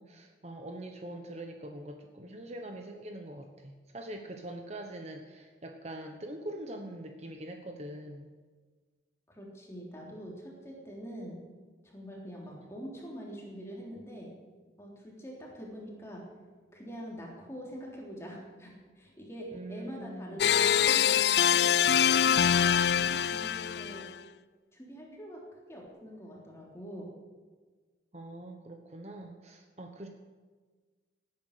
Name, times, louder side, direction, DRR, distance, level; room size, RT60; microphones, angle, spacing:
voice 1, 0.0-8.3 12.4-12.6 19.5-20.5 28.1-30.1, right 1 dB, 35° right, 4 dB, 1.1 m, -43 dB
voice 2, 9.3-11.4 11.8-14.3 14.8-16.2 16.7-24.1 24.7-25.4 25.7-27.1, equal, 15° left, -2 dB, 3.5 m, -44 dB
sound 1, 20.4-24.1, left 9 dB, 65° left, 0.4 m, -24 dB
17.0 x 9.8 x 6.6 m, 1.4 s
head